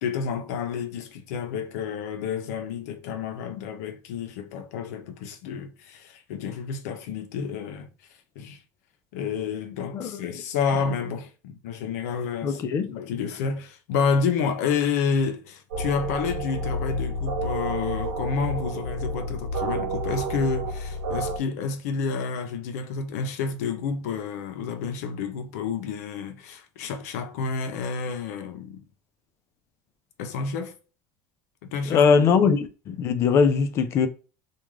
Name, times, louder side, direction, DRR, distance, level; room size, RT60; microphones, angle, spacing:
voice 1, 0.0-7.9 8.4-8.6 9.1-12.6 12.9-28.8 30.2-30.7 31.6-32.4, left 5 dB, 85° left, 0.5 m, -29 dB
voice 2, 9.9-10.3 12.4-12.9 31.9-34.1, left 6 dB, 35° left, 0.4 m, -21 dB
sound 1, 15.7-21.4, right 1 dB, 85° right, 1.0 m, -30 dB
2.4 x 2.2 x 3.1 m
supercardioid pair, 150°, 8 cm